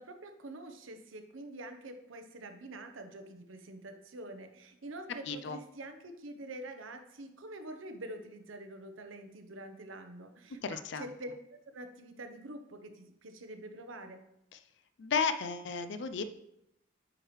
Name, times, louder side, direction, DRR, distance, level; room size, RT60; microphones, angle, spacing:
voice 1, 0.0-14.2, right 1 dB, 80° right, 6 dB, 0.8 m, -46 dB
voice 2, 5.3-5.6 10.6-11.1 14.5-14.6 15.0-16.2, left 5 dB, 60° left, 10 dB, 0.4 m, -33 dB
8.8 x 4.8 x 3.2 m, 0.82 s
head